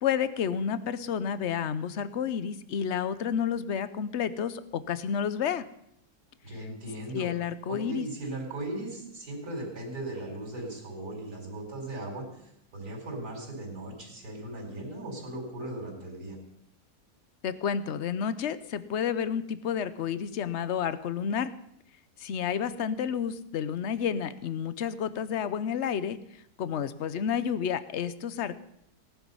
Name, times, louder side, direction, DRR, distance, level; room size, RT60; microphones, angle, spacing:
voice 1, 0.0-5.7 6.6-6.7 7.1-8.1 17.4-21.5 22.2-26.2 26.6-28.6, left 8 dB, 55° left, 14 dB, 0.9 m, -30 dB
voice 2, 6.4-7.3 7.7-12.2 12.7-16.4, right 1 dB, 70° right, 1 dB, 4.7 m, -38 dB
18.0 x 11.0 x 5.5 m, 0.75 s
omnidirectional pair, 1.7 m